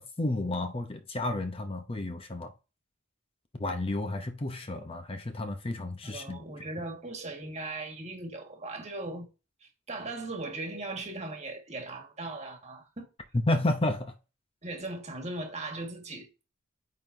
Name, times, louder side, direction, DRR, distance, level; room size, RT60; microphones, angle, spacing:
voice 1, 0.0-2.5 3.6-6.4 13.5-14.1, left 2 dB, 30° left, 0.7 m, -31 dB
voice 2, 6.0-9.3 9.6-13.1 14.6-16.4, right 2 dB, 35° right, 1.6 m, -38 dB
9.2 x 3.8 x 2.7 m
head